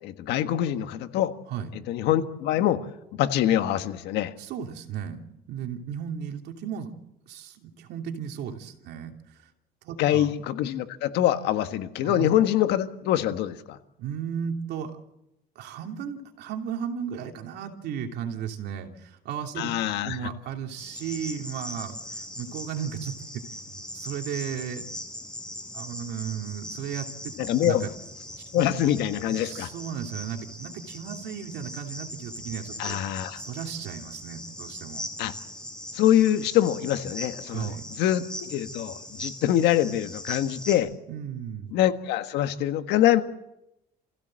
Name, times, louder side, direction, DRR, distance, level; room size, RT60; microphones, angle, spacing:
voice 1, 0.0-1.3 1.7-2.8 3.1-4.3 10.0-13.8 19.6-20.3 27.4-27.8 28.5-29.7 32.8-33.4 35.2-35.3 35.9-40.9 41.7-43.2, left 12 dB, 85° left, 9 dB, 1.6 m, -24 dB
voice 2, 4.4-6.9 7.3-9.5 9.8-10.3 12.0-12.3 14.0-15.0 15.5-23.5 23.7-24.8 25.7-27.3 27.6-27.9 28.4-28.7 29.3-33.0 33.4-35.0 37.5-37.9 41.1-41.7, right 8 dB, 80° right, 4 dB, 2.9 m, -35 dB
Cricket, 20.8-40.8, left 1 dB, 5° left, 6.8 m, -40 dB
27.5 x 16.0 x 7.7 m, 0.89 s
cardioid pair, 110°, 17 cm